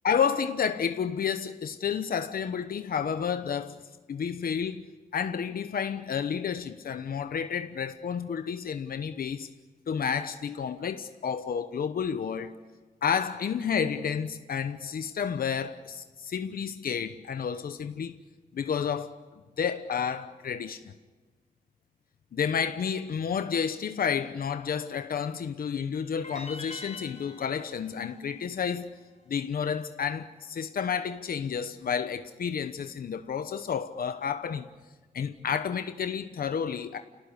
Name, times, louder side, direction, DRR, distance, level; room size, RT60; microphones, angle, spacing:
voice 1, 0.0-3.8 4.1-4.9 5.1-9.5 9.9-12.5 13.0-18.2 18.5-19.2 19.6-20.8 22.3-28.9 29.3-34.7 35.1-37.0, left 7 dB, 80° left, 1.0 m, -30 dB
sound 1, 26.2-29.4, left 2 dB, 50° left, 3.2 m, -45 dB
28.5 x 18.5 x 9.8 m
wide cardioid pair, 110°, 15 cm